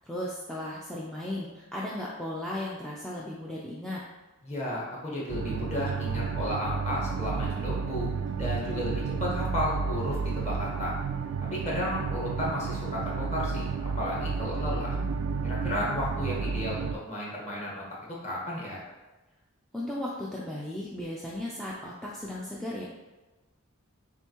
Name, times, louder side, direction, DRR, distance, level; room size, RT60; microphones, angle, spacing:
voice 1, 0.1-4.0 19.7-22.8, left 1 dB, ahead, -6 dB, 0.4 m, -36 dB
voice 2, 4.4-8.1 8.4-10.9 11.5-13.7 14.0-15.0 15.4-17.8 18.2-18.8, left 1 dB, 30° left, -5 dB, 1.2 m, -33 dB
sound 1, 5.3-17.0, right 5 dB, 75° right, 0.3 m, -31 dB
6.8 x 2.7 x 2.9 m, 1.1 s
head